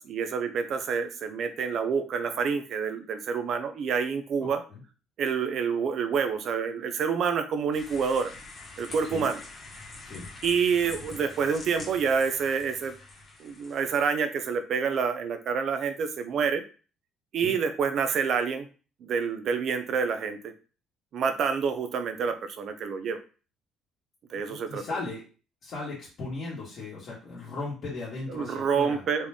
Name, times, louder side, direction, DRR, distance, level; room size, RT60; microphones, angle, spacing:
voice 1, 0.0-4.6 5.2-8.3 8.8-9.4 10.4-12.9 13.4-16.6 17.3-18.7 19.0-20.5 21.1-23.2 24.3-24.8 28.3-29.3, right 6 dB, 50° right, 8 dB, 0.6 m, -28 dB
voice 2, 4.4-4.8 9.1-9.3 10.0-10.2 17.4-17.6 24.5-25.2 25.6-29.0, left 3 dB, 45° left, -8 dB, 1.9 m, -37 dB
sound 1, 7.7-14.1, left 3 dB, 25° left, 1.7 m, -45 dB
4.1 x 3.2 x 3.6 m, 0.36 s
cardioid pair, 140°, 0 cm